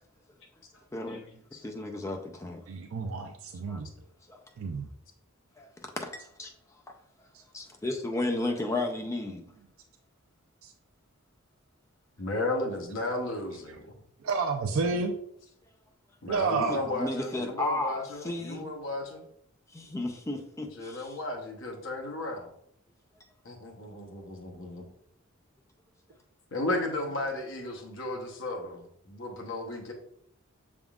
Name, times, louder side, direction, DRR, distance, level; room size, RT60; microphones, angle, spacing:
voice 1, 0.9-1.2 1.6-2.6 3.7-3.8 4.3-4.4 5.6-5.7 6.0-6.5 7.5-9.4 16.7-18.6 19.7-21.1, left 2 dB, 15° left, 3 dB, 0.4 m, -33 dB
voice 2, 2.7-3.9 4.6-4.9 10.6-10.7 14.2-15.1 16.3-16.9, right 4 dB, 70° right, 5 dB, 0.4 m, -30 dB
voice 3, 12.2-14.0 16.2-19.2 20.8-22.5 23.4-24.8 26.5-29.9, left 2 dB, 60° left, 1 dB, 0.9 m, -34 dB
6.1 x 3.6 x 2.3 m, 0.69 s
head